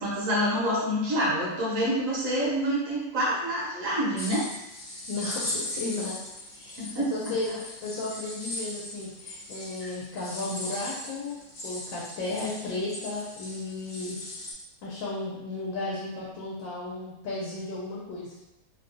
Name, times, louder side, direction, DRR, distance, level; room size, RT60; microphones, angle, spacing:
voice 1, 0.0-4.4 6.8-7.1 7.5-7.6 9.8-9.9, equal, 50° right, -5 dB, 1.1 m, -27 dB
sound 1, 4.2-14.5, left 1 dB, 55° left, 0.7 m, -39 dB
voice 2, 5.1-6.2 6.5-6.8 7.1-11.4 11.6-14.2 14.8-18.3, left 2 dB, 80° left, -6 dB, 1.4 m, -34 dB
3.2 x 2.3 x 2.5 m, 0.93 s
omnidirectional pair, 2.0 m